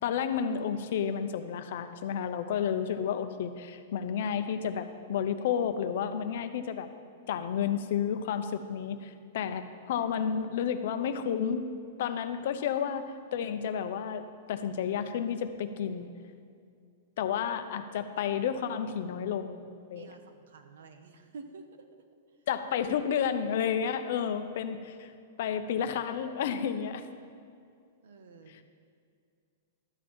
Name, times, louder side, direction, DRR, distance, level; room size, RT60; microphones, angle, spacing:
voice 1, 0.0-6.9 7.3-11.7 12.0-13.0 13.3-16.1 17.2-20.1 22.5-25.1 25.4-27.0 28.5-28.6, left 8 dB, 60° left, 9 dB, 0.6 m, -31 dB
voice 2, 19.9-21.9 28.0-28.5, right 4 dB, 75° right, 7 dB, 1.0 m, -49 dB
12.5 x 7.4 x 4.4 m, 2.3 s
hypercardioid pair, 160°, 0 cm